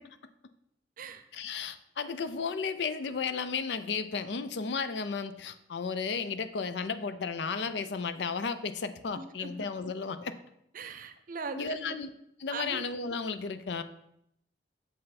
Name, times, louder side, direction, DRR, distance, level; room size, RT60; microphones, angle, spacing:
voice 1, 1.3-10.3 11.5-12.1 12.4-13.8, left 5 dB, 70° left, 12 dB, 0.5 m, -34 dB
voice 2, 9.1-9.5 10.7-12.0 12.5-12.8, right 4 dB, 50° right, 9 dB, 0.6 m, -40 dB
6.8 x 5.4 x 4.1 m, 0.77 s
head